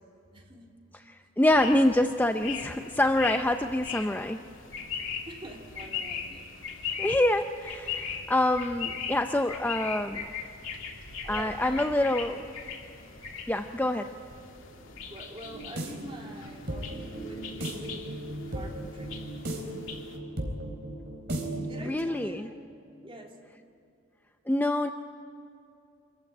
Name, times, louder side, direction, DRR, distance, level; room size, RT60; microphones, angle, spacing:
voice 1, 0.3-0.7 5.3-6.4 11.2-12.0 14.7-19.2 21.7-22.6 23.0-23.4, right 1 dB, 25° right, 0 dB, 3.0 m, -45 dB
voice 2, 1.1-4.4 7.0-10.3 11.3-12.5 13.5-14.1 21.8-22.5 24.5-24.9, left 1 dB, 10° left, 7 dB, 0.5 m, -26 dB
sound 1, 1.5-20.2, left 6 dB, 80° left, 3.1 m, -39 dB
sound 2, 15.4-22.0, right 1 dB, 55° right, 4.0 m, -36 dB
26.0 x 15.0 x 9.1 m, 2.5 s
head